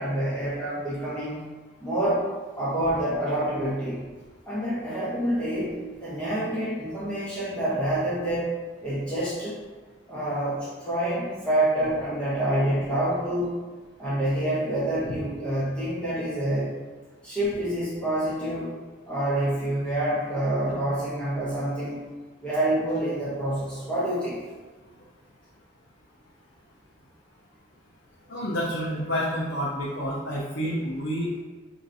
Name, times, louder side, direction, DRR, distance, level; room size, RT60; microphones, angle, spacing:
voice 1, 0.0-1.5 1.8-2.3 2.6-4.0 4.5-8.5 8.8-9.5 10.1-13.6 14.0-16.7 17.2-18.7 19.1-22.0 22.4-24.4, right 1 dB, 5° left, -10 dB, 0.9 m, -27 dB
voice 2, 28.3-31.4, equal, 80° left, -5 dB, 0.6 m, -29 dB
4.7 x 2.8 x 2.6 m, 1.3 s
head